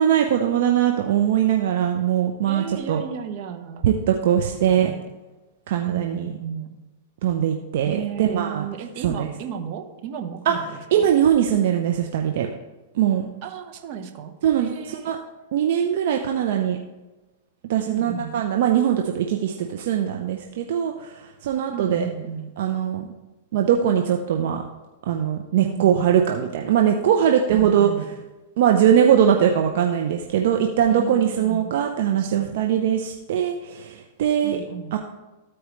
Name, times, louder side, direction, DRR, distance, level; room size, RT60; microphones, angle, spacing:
voice 1, 0.0-3.0 3.8-4.9 5.7-6.3 7.2-8.6 9.0-9.3 10.5-10.6 10.9-12.5 12.9-13.3 14.4-15.2 15.5-16.8 17.7-22.1 22.6-23.1 23.5-24.6 25.1-27.9 28.6-34.6 34.9-35.0, right 9 dB, 65° right, 3 dB, 0.7 m, -21 dB
voice 2, 2.5-3.8 4.2-5.1 5.8-6.7 7.8-11.1 13.4-14.3 14.6-15.2 17.8-18.3 21.7-22.5 25.6-26.1 27.5-28.1 30.9-31.8 32.1-32.6 34.4-35.0, right 8 dB, 50° right, 5 dB, 1.1 m, -34 dB
14.0 x 4.7 x 3.1 m, 1.1 s
hypercardioid pair, 125°, 0 cm